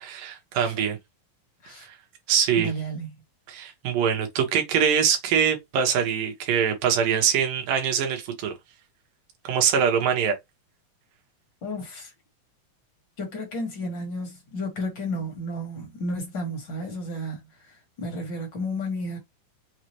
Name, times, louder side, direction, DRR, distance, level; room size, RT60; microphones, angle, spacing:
voice 1, 0.0-1.0 1.8-1.9 2.3-2.7 3.5-8.5 9.4-10.3, right 8 dB, 70° right, 2.8 m, -23 dB
voice 2, 2.5-3.1 11.6-12.1 13.2-19.2, equal, 50° left, 1.5 m, -32 dB
6.5 x 2.4 x 3.0 m
omnidirectional pair, 4.2 m